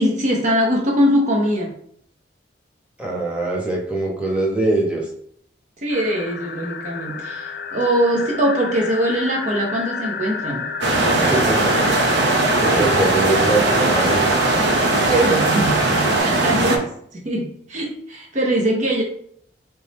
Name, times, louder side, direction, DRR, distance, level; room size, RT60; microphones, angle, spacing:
voice 1, 0.0-1.7 5.8-10.7 15.0-19.0, equal, 45° right, -1 dB, 0.7 m, -21 dB
voice 2, 3.0-5.0 11.1-11.9 12.6-14.4, right 2 dB, 5° right, -3 dB, 1.0 m, -23 dB
sound 1, 5.9-16.2, left 5 dB, 60° left, 0.5 m, -31 dB
sound 2, 10.8-16.8, right 2 dB, 90° right, 0.8 m, -19 dB
3.7 x 2.9 x 4.1 m, 0.66 s
head